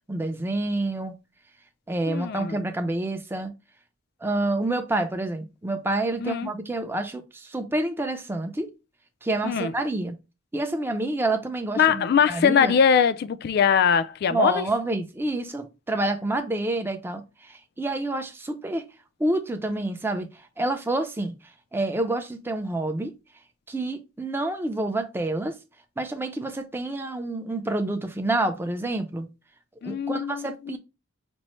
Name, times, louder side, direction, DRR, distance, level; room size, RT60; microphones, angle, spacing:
voice 1, 0.1-1.1 1.9-3.5 4.2-8.7 9.2-10.2 10.5-12.8 14.3-18.8 19.2-20.3 20.6-21.3 21.7-23.1 23.7-25.6 26.0-29.3 29.8-30.8, right 2 dB, 10° right, 0.5 m, -28 dB
voice 2, 2.1-2.5 6.2-6.5 9.4-9.7 11.8-14.7 29.8-30.8, left 7 dB, 50° left, 0.3 m, -22 dB
5.2 x 2.1 x 3.0 m
head